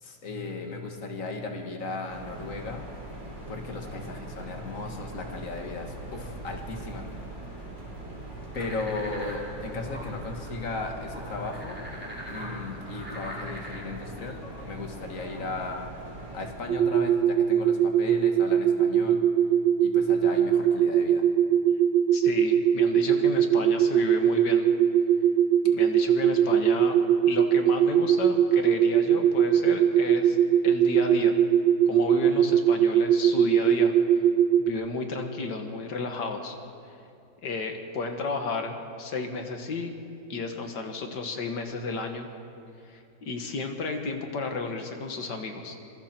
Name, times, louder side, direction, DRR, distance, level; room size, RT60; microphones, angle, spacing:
voice 1, 0.0-2.8 3.5-7.2 8.5-11.8 12.3-15.9 16.3-19.2 19.8-21.2, left 3 dB, 50° left, 3 dB, 2.3 m, -36 dB
sound 1, 2.1-16.5, right 2 dB, 40° right, 5.0 m, -41 dB
sound 2, 8.5-13.8, equal, 5° right, 3.6 m, -42 dB
sound 3, 16.7-34.7, right 9 dB, 85° right, 0.5 m, -21 dB
voice 2, 22.1-24.7 25.7-27.0 27.3-30.4 30.6-31.4 31.9-34.0 34.6-36.6 37.4-39.9 40.3-42.3 42.9-45.8, left 3 dB, 85° left, 5 dB, 2.3 m, -33 dB
26.0 x 22.5 x 4.5 m, 2.6 s
omnidirectional pair, 1.8 m